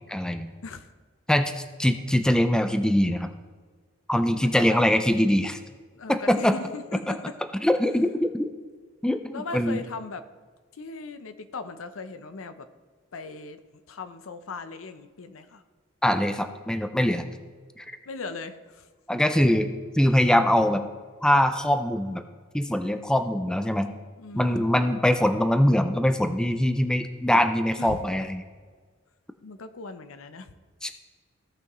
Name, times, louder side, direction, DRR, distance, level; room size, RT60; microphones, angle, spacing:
voice 1, 0.1-0.5 1.3-3.3 4.1-5.6 6.1-6.5 7.6-8.5 9.0-9.8 16.0-17.2 17.8-17.9 19.1-20.8 21.2-22.2 22.5-23.9 24.3-28.4 30.8-30.9, left 1 dB, 5° left, 8 dB, 0.4 m, -23 dB
voice 2, 4.4-4.8 5.9-7.2 9.3-10.2 10.7-12.7 13.1-13.6 13.9-15.6 18.1-18.9 24.2-24.7 27.8-28.1 29.4-30.5, left 3 dB, 75° left, 11 dB, 0.6 m, -38 dB
16.0 x 5.8 x 3.1 m, 1.5 s
head